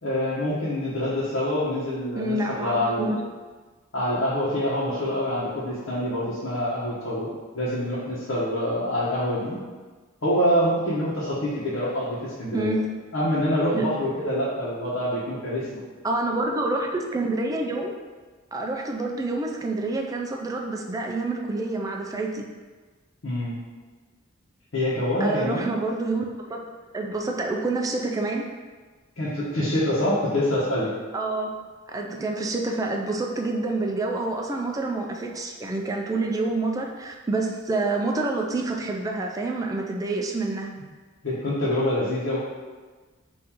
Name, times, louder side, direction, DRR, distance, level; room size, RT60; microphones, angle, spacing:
voice 1, 0.0-3.1 3.9-7.3 7.5-9.6 10.2-12.8 13.1-15.8 23.2-23.6 24.7-25.8 29.2-30.9 41.2-42.4, left 1 dB, 75° left, -9 dB, 0.9 m, -26 dB
voice 2, 2.2-3.2 12.5-12.9 13.7-13.9 16.0-17.9 18.5-22.5 25.2-26.6 26.9-28.4 31.1-31.5 31.9-40.7, right 2 dB, 20° right, 0 dB, 0.3 m, -27 dB
3.6 x 2.6 x 4.3 m, 1.4 s
head